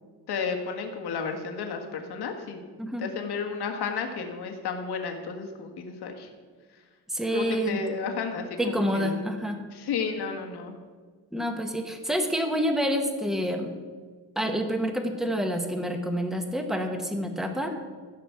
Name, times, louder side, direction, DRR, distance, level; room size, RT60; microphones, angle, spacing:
voice 1, 0.3-2.6 3.0-6.3 7.3-9.2 9.7-10.7, left 5 dB, 85° left, 3 dB, 1.8 m, -32 dB
voice 2, 7.1-7.8 8.6-9.6 11.3-13.7 14.4-17.8, equal, ahead, 5 dB, 1.0 m, -28 dB
15.0 x 6.0 x 7.1 m, 1.5 s
wide cardioid pair, 170°, 39 cm